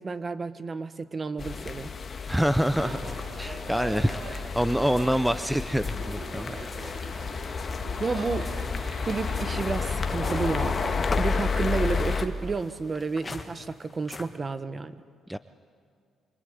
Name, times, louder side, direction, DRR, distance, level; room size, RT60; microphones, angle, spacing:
voice 1, 0.0-1.9 8.0-8.5 9.0-15.0, right 4 dB, 35° right, 12 dB, 1.3 m, -31 dB
sound 1, 1.4-12.3, left 5 dB, 40° left, 1.6 m, -31 dB
sound 2, 2.3-7.1 7.4-14.4, left 3 dB, 25° left, 1.8 m, -43 dB
voice 2, 2.3-3.1 3.4-6.7 8.2-8.3 15.3-15.4, equal, 5° right, 12 dB, 0.6 m, -26 dB
sound 3, 2.7-12.3, right 3 dB, 55° right, 4.6 m, -41 dB
25.0 x 24.0 x 9.6 m, 2.1 s
cardioid pair, 90°, 0 cm